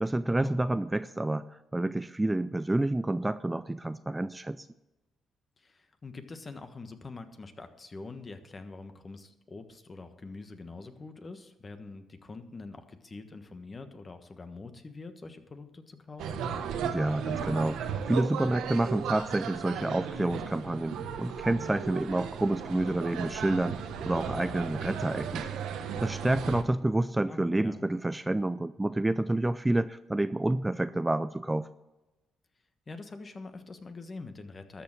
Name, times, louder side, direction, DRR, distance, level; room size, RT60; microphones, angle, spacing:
voice 1, 0.0-4.7 16.8-25.4 26.0-31.7, right 1 dB, 10° right, 13 dB, 0.4 m, -29 dB
voice 2, 5.6-16.5 27.3-27.9 32.9-34.8, left 3 dB, 30° left, 8 dB, 1.3 m, -45 dB
sound 1, 16.2-26.6, right 7 dB, 85° right, 1.2 m, -35 dB
13.0 x 6.6 x 7.4 m, 1.0 s
cardioid pair, 90°, 0 cm